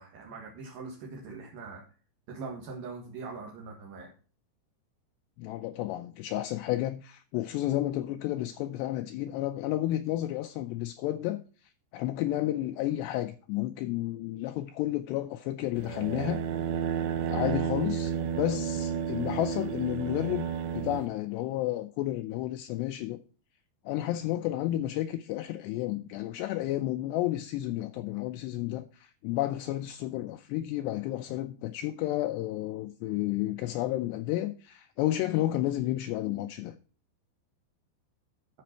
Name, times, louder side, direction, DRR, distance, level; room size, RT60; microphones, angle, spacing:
voice 1, 0.0-1.8 2.3-4.1, right 4 dB, 60° right, 3.3 m, -42 dB
voice 2, 5.4-16.4 17.3-20.5 20.7-23.2 23.9-36.8, left 14 dB, 85° left, 2.5 m, -31 dB
sound 1, 15.8-21.1, right 8 dB, 85° right, 3.2 m, -32 dB
12.5 x 5.9 x 4.4 m
omnidirectional pair, 5.3 m